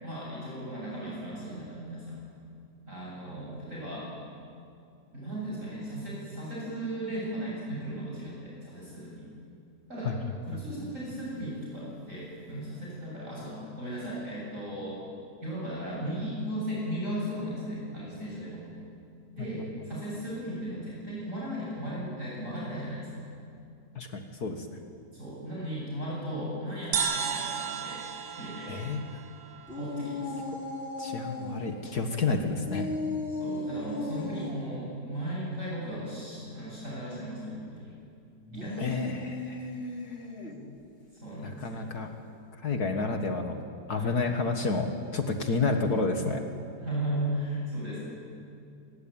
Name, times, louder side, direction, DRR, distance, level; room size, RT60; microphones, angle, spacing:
voice 1, 0.0-2.2 2.9-4.1 5.1-9.3 9.9-10.1 10.5-15.0 15.4-18.6 19.4-23.1 25.1-28.0 28.4-28.8 29.7-30.3 33.3-37.9 38.5-39.1 41.1-41.9 43.9-44.2 46.8-48.0, right 1 dB, 45° right, -5 dB, 8.1 m, -36 dB
voice 2, 24.0-24.7 28.7-29.0 31.0-32.9 38.8-39.7 40.1-40.2 41.4-42.1 42.6-43.6 43.9-46.4, left 3 dB, 60° left, 5 dB, 2.2 m, -30 dB
sound 1, 26.9-30.4, right 6 dB, 65° right, 1.9 m, -34 dB
sound 2, 29.7-31.6 32.6-34.6 38.4-40.6, left 2 dB, 35° left, 4.5 m, -36 dB
27.5 x 21.5 x 9.0 m, 2.4 s
omnidirectional pair, 1.9 m